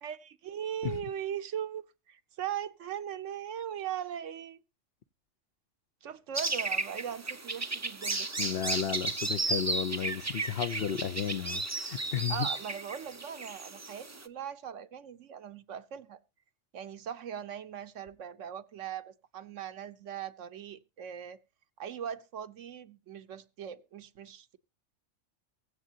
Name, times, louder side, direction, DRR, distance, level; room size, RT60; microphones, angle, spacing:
voice 1, 0.0-4.6 6.0-8.3 12.3-16.2 16.7-21.4 21.8-24.6, right 9 dB, 75° right, 1.2 m, -39 dB
sound 1, 6.3-14.3, right 3 dB, 20° right, 0.4 m, -34 dB
voice 2, 8.4-12.5, left 9 dB, 55° left, 0.9 m, -33 dB
23.0 x 7.7 x 2.8 m
omnidirectional pair, 1.3 m